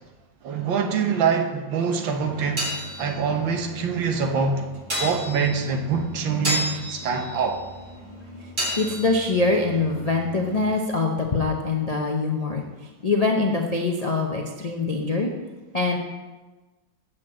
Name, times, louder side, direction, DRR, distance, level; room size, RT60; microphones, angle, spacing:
voice 1, 0.4-2.7 3.0-4.7 5.0-7.6, right 5 dB, 80° right, 4 dB, 1.8 m, -24 dB
sound 1, 2.2-10.8, equal, 25° right, 2.6 m, -33 dB
voice 2, 8.8-12.6 13.0-15.3 15.7-16.0, left 3 dB, 75° left, 0 dB, 0.3 m, -23 dB
7.7 x 6.3 x 7.5 m, 1.2 s
omnidirectional pair, 2.0 m